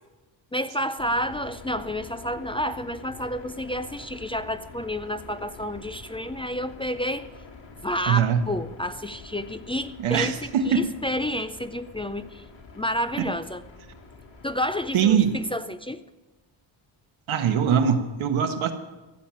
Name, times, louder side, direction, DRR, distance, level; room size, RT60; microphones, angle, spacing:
voice 1, 0.5-7.3 7.8-12.4 12.7-13.6 14.4-16.0, equal, 10° left, 10 dB, 0.4 m, -30 dB
sound 1, 1.0-15.5, left 3 dB, 70° left, 4.0 m, -46 dB
voice 2, 8.1-8.4 10.0-10.9 13.2-13.3 14.9-15.3 17.3-18.7, right 7 dB, 85° right, 6 dB, 1.5 m, -22 dB
15.0 x 7.3 x 9.6 m, 1.2 s
cardioid pair, 100°, 47 cm